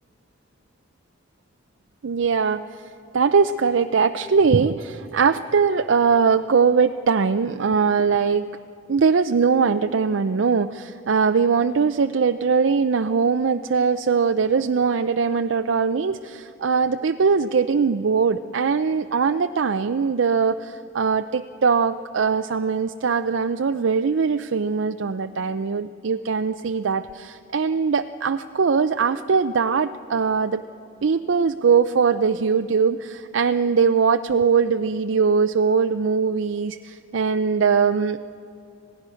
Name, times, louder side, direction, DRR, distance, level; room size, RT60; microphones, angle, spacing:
voice 1, 2.0-2.8 3.1-8.5 8.9-30.6 31.0-38.2, right 5 dB, 70° right, 8 dB, 0.5 m, -21 dB
26.5 x 17.5 x 6.3 m, 2.7 s
head